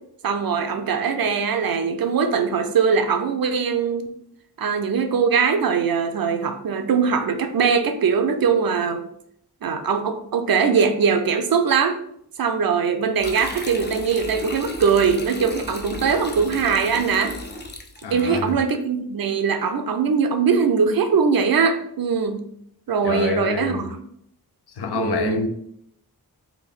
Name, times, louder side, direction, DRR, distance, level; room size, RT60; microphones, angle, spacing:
voice 1, 0.2-4.1 4.6-9.0 9.6-12.0 12.4-17.3 18.1-22.4 22.9-24.0 24.9-25.4, right 6 dB, 60° right, 0.6 m, -21 dB
sound 1, 13.2-18.4, left 2 dB, 25° left, 0.6 m, -35 dB
voice 2, 18.0-18.6 23.0-23.9 24.8-25.5, left 4 dB, 70° left, 0.6 m, -26 dB
3.4 x 2.2 x 3.6 m
cardioid pair, 45°, 40 cm